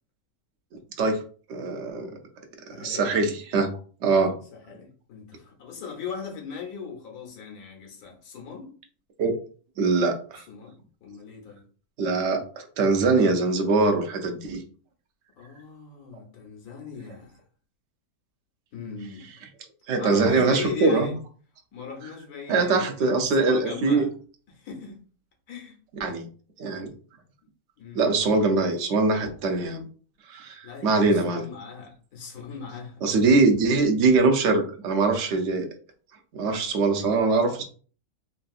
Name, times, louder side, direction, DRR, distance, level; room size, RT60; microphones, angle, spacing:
voice 1, 1.5-2.1 2.8-3.7 4.0-4.4 9.2-9.3 9.8-10.4 12.0-14.6 19.9-21.2 22.5-24.0 26.0-26.3 26.6-26.9 27.9-29.9 30.3-31.5 33.0-35.7 36.3-37.6, right 3 dB, 60° right, 0.8 m, -22 dB
voice 2, 2.7-3.1 4.7-8.7 10.5-11.6 15.4-17.4 18.7-19.3 20.0-21.2 21.7-24.1 24.5-25.0 25.5-25.8 27.8-28.2 30.6-33.1, left 5 dB, 80° left, 1.4 m, -38 dB
3.3 x 2.6 x 2.3 m
omnidirectional pair, 1.6 m